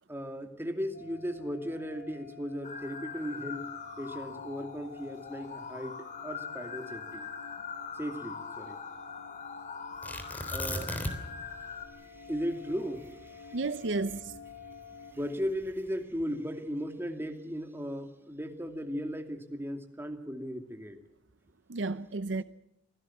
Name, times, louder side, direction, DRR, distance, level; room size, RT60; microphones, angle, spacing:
voice 1, 0.1-7.3 7.9-8.8 10.5-11.3 11.9-13.6 15.0-21.0, equal, 15° right, 2.6 m, -37 dB
sound 1, 0.9-15.1, left 5 dB, 60° left, 5.5 m, -51 dB
sound 2, 2.6-11.9, left 6 dB, 40° left, 2.7 m, -42 dB
Tearing, 10.0-11.4 11.7-11.8 12.3-14.7 15.4-15.9, equal, 10° left, 3.2 m, -37 dB
voice 2, 13.5-14.4 21.7-22.4, right 3 dB, 75° right, 0.7 m, -32 dB
25.5 x 17.5 x 7.3 m
head